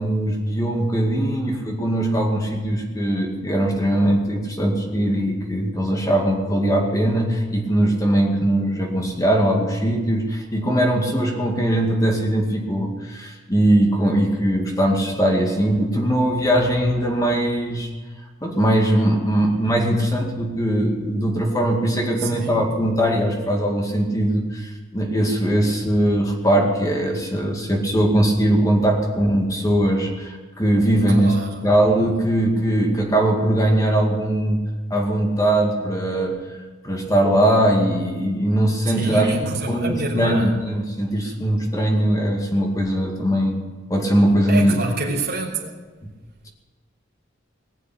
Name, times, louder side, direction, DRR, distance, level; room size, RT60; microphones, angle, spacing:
voice 1, 0.0-17.9 18.4-34.6 34.9-36.4 36.8-43.6 43.9-44.8 45.1-45.2 46.0-46.1, right 1 dB, 15° left, 1 dB, 2.2 m, -20 dB
voice 2, 22.2-22.7 31.1-31.7 38.9-40.5 41.2-41.3 44.5-45.8, right 2 dB, 50° right, -5 dB, 3.2 m, -28 dB
20.0 x 7.5 x 8.5 m, 1.3 s
head